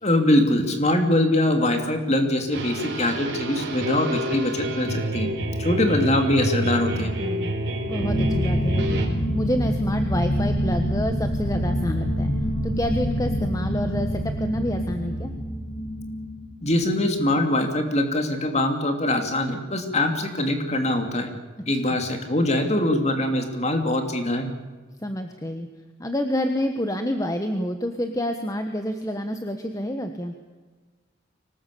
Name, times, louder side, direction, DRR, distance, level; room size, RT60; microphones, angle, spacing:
voice 1, 0.0-5.3 5.6-7.1 16.6-21.3 21.7-24.5, left 1 dB, 35° left, 5 dB, 2.9 m, -23 dB
sound 1, 2.5-9.1, right 1 dB, 60° right, 4.2 m, -28 dB
voice 2, 7.0-7.5 7.9-12.3 12.6-15.3 21.9-22.0 25.0-25.7 26.0-30.3, equal, 15° left, 6 dB, 1.3 m, -28 dB
sound 2, 8.0-17.5, equal, 85° left, 4.7 m, -26 dB
24.5 x 19.0 x 8.5 m, 1.3 s
head